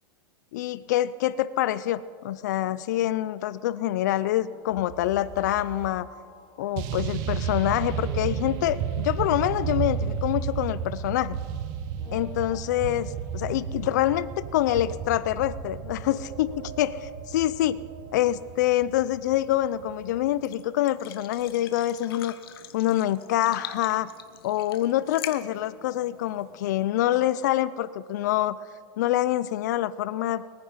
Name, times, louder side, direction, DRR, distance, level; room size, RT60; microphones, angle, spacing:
voice 1, 0.5-6.1 6.6-11.4 12.1-14.3 14.5-16.5 16.8-17.8 18.1-22.3 22.7-24.1 24.4-28.6 29.0-30.4, left 13 dB, 50° left, 17 dB, 0.4 m, -26 dB
sound 1, 4.5-11.7 12.0-18.7, right 1 dB, 15° left, 2.7 m, -49 dB
sound 2, 4.7-5.9 6.8-20.4, right 8 dB, 30° right, 0.8 m, -33 dB
sound 3, 18.4-26.9, left 10 dB, 80° left, 1.1 m, -45 dB
22.0 x 9.7 x 5.5 m, 2.2 s
supercardioid pair, 175°, 12 cm